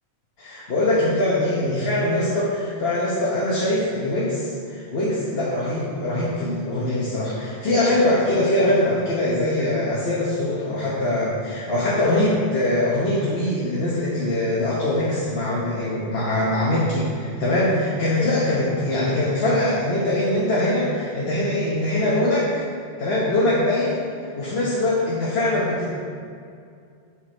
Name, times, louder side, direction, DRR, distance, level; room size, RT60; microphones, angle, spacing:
voice 1, 0.4-22.6 23.0-25.9, left 1 dB, 60° left, -6 dB, 1.3 m, -22 dB
8.0 x 6.1 x 4.3 m, 2.3 s
omnidirectional pair, 1.2 m